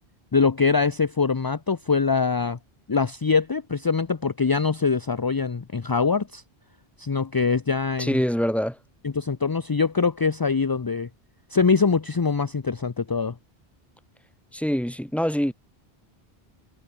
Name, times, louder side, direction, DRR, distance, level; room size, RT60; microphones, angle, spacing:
voice 1, 0.3-2.6 2.9-6.4 7.0-8.2 9.0-11.1 11.5-13.3, left 5 dB, 30° left, 0.5 m, -23 dB
voice 2, 8.0-8.8 14.5-15.5, equal, ahead, 1.9 m, -24 dB
omnidirectional pair, 1.1 m